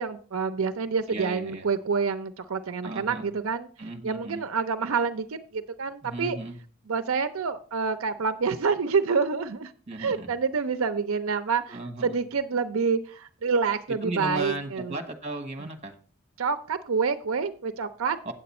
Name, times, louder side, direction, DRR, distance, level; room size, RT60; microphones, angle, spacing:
voice 1, 0.0-3.7 4.0-6.4 6.9-9.7 10.0-15.0 16.4-18.2, right 5 dB, 75° right, 9 dB, 0.6 m, -27 dB
voice 2, 1.1-1.7 2.8-3.3 3.8-4.4 6.0-6.6 9.9-10.3 11.7-12.2 14.0-15.9 18.2-18.3, right 2 dB, 30° right, 4 dB, 1.3 m, -36 dB
9.0 x 7.8 x 4.2 m, 0.42 s
head